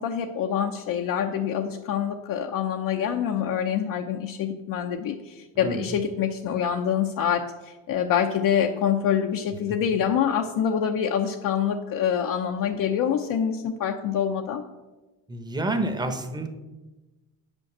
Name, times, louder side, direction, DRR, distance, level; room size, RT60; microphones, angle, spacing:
voice 1, 0.0-14.6, left 8 dB, 65° left, 3 dB, 0.8 m, -26 dB
voice 2, 5.5-5.9 15.3-16.5, right 1 dB, 10° right, 6 dB, 1.0 m, -28 dB
8.9 x 5.3 x 7.2 m, 1.1 s
cardioid pair, 140°, 36 cm